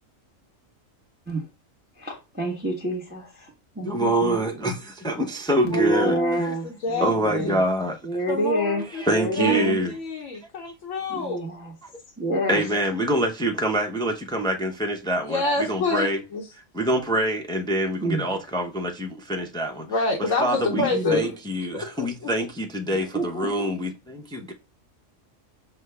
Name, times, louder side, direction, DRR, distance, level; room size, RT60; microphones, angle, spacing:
voice 1, 2.0-3.5 3.8-4.4 5.6-7.6 8.0-8.8 9.1-9.8 11.1-11.7 12.2-12.6 18.0-18.2 20.7-21.2 22.9-23.5, right 1 dB, 10° right, 0.8 m, -27 dB
voice 2, 3.8-6.5 7.0-8.0 8.9-9.9 12.5-15.4 15.7-16.2 16.7-19.9 20.4-24.5, right 1 dB, 5° left, 0.3 m, -25 dB
voice 3, 5.7-7.6 8.3-9.0 9.4-11.5 15.2-16.5 19.8-21.4 21.7-22.3, left 3 dB, 70° left, 1.2 m, -28 dB
6.1 x 2.2 x 3.3 m
omnidirectional pair, 1.4 m